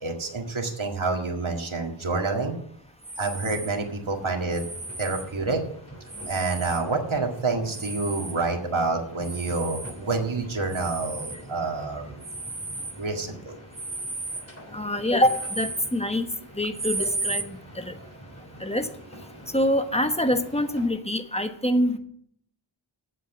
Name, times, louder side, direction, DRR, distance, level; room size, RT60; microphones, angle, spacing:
voice 1, 0.0-2.5 3.2-4.6 5.0-5.6 6.3-12.2 13.0-13.6, right 3 dB, 80° right, 1 dB, 2.0 m, -28 dB
sound 1, 3.0-3.8 4.5-5.3 6.1-6.9 7.6-8.4 9.2-10.0 10.7-11.4 12.2-13.0 13.7-14.5 15.2-16.0 16.7-17.5, right 2 dB, 20° right, 0.9 m, -34 dB
sound 2, 3.3-20.9, equal, 30° left, 3.2 m, -46 dB
voice 2, 14.7-16.3 16.6-17.5 17.7-17.9 18.6-18.9 19.5-22.0, left 1 dB, 15° left, 7 dB, 1.1 m, -25 dB
8.4 x 7.7 x 8.1 m, 0.68 s
wide cardioid pair, 55°, 47 cm